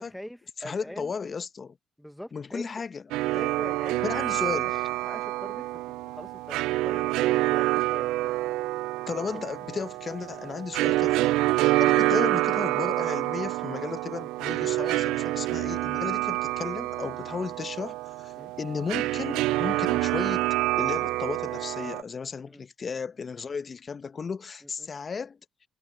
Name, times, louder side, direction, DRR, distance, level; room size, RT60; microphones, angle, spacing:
voice 1, 0.0-1.1 2.0-2.9 3.3-4.7 5.0-5.7 6.1-8.3 11.7-11.9 16.0-16.2 18.4-18.5 22.5-22.6 24.6-24.9, equal, 5° left, 1.1 m, -43 dB
voice 2, 0.6-1.8 2.3-3.0 4.0-4.8 9.1-18.3 18.6-20.5 20.8-25.4, left 5 dB, 45° left, 1.0 m, -34 dB
sound 1, 3.1-22.0, right 18 dB, 85° right, 0.3 m, -27 dB
supercardioid pair, 60°, 0 cm